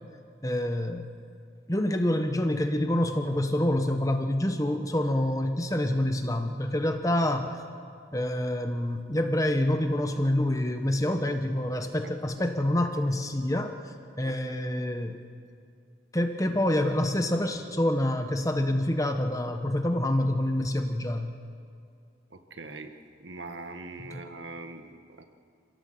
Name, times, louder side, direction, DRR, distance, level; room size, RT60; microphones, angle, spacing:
voice 1, 0.4-1.1 1.7-7.6 8.1-15.2 16.1-21.4 24.1-24.2, left 1 dB, 20° left, 6 dB, 1.2 m, -27 dB
voice 2, 22.3-22.9 23.2-25.2, right 3 dB, 80° right, 6 dB, 1.6 m, -42 dB
26.5 x 17.0 x 7.9 m, 2.3 s
head